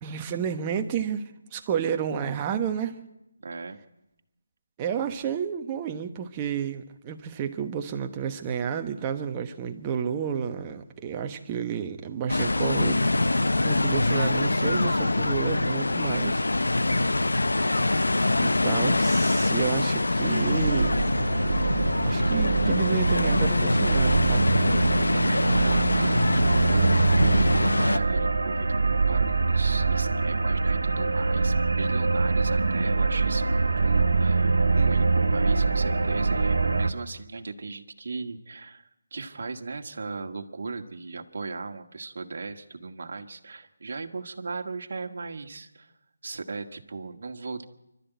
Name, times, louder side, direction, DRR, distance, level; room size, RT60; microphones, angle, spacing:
voice 1, 0.0-3.0 4.8-13.2 13.6-16.5 17.1-18.0 18.4-21.0 22.0-24.5, right 7 dB, 20° right, 6 dB, 1.2 m, -31 dB
voice 2, 3.4-3.8 25.1-45.9 46.2-47.6, right 4 dB, 55° right, 5 dB, 1.8 m, -37 dB
sound 1, 12.3-28.0, left 2 dB, 85° left, 0.9 m, -24 dB
sound 2, 20.2-36.9, right 4 dB, 80° right, 1.4 m, -24 dB
26.5 x 12.5 x 9.4 m, 0.90 s
figure-of-eight pair, 165°, 0 cm